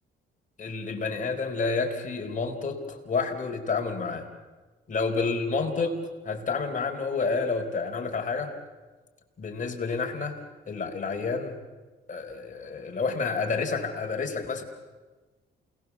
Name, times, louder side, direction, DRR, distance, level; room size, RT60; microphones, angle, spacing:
voice 1, 0.6-4.3 4.9-6.0 6.2-8.5 9.4-10.3 10.7-11.6 12.1-14.6, left 4 dB, 40° left, 2 dB, 4.6 m, -29 dB
29.0 x 19.5 x 7.3 m, 1.3 s
cardioid pair, 90°, 20 cm